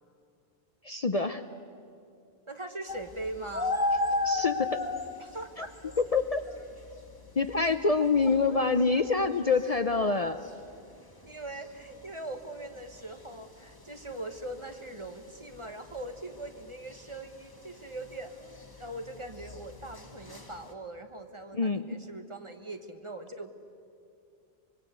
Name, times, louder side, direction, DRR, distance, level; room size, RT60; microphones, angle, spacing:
voice 1, 0.8-1.4 4.2-4.8 5.6-5.7 6.1-6.4 7.4-10.4 21.5-22.0, left 4 dB, 40° left, 9 dB, 0.7 m, -26 dB
voice 2, 2.5-3.7 5.2-5.8 8.2-8.8 11.2-23.5, right 2 dB, 30° right, 6 dB, 1.4 m, -41 dB
sound 1, 2.9-20.7, left 2 dB, 20° left, 1.7 m, -37 dB
25.0 x 23.0 x 8.1 m, 2.5 s
omnidirectional pair, 1.1 m